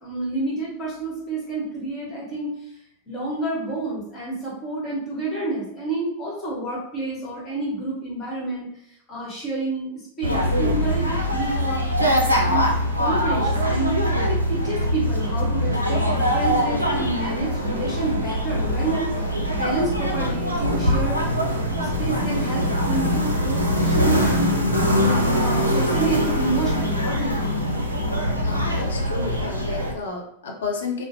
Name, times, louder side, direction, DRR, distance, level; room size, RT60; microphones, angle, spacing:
voice 1, 0.0-2.5 3.1-8.7 9.1-12.1 12.4-12.7 13.0-14.0 14.3-19.1 19.5-21.3 21.8-27.6, right 2 dB, 25° left, -6 dB, 1.3 m, -29 dB
sound 1, 10.2-29.9, equal, 85° right, 0.4 m, -22 dB
voice 2, 28.4-31.1, left 4 dB, 65° left, 2 dB, 0.5 m, -31 dB
2.4 x 2.0 x 2.6 m, 0.74 s
figure-of-eight pair, 90°, 0 cm